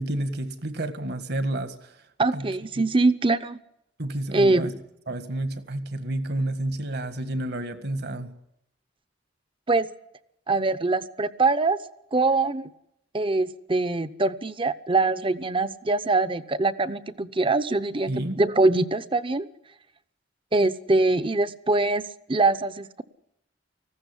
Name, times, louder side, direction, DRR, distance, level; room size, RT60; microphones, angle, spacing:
voice 1, 0.0-2.0 2.3-2.5 2.8-2.9 4.0-4.7 5.1-8.3 18.1-18.4, right 1 dB, 60° right, 11 dB, 1.8 m, -30 dB
voice 2, 2.2-3.6 4.3-4.7 9.7-9.9 10.5-11.8 12.1-12.7 13.1-18.1 18.4-19.5 20.5-23.0, right 3 dB, 30° right, 13 dB, 0.8 m, -23 dB
19.0 x 15.5 x 9.9 m, 0.80 s
head